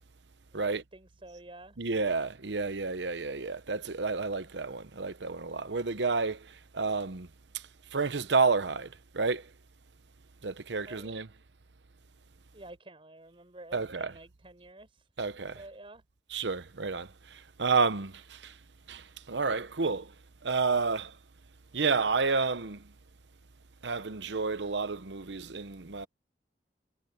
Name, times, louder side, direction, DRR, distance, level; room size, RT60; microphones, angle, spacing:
voice 1, 0.5-1.8 10.8-11.1 12.5-15.1 15.3-16.0, right 2 dB, 30° right, 4.6 m, -49 dB
voice 2, 1.8-7.3 7.5-7.6 7.9-9.5 10.4-11.3 13.7-14.2 15.2-15.6 16.3-18.5 18.9-20.1 20.4-21.2 21.7-22.8 23.8-26.1, right 4 dB, 80° right, 0.9 m, -30 dB
head